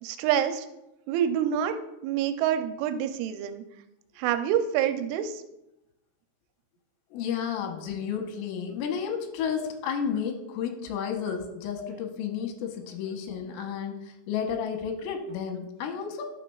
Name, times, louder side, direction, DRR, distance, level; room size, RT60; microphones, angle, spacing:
voice 1, 0.0-0.7 1.1-1.7 2.0-3.6 4.2-5.4, right 9 dB, 80° right, 8 dB, 2.9 m, -27 dB
voice 2, 7.1-14.0 14.3-16.2, left 7 dB, 90° left, 4 dB, 3.5 m, -32 dB
11.5 x 6.5 x 2.3 m, 0.90 s
omnidirectional pair, 5.7 m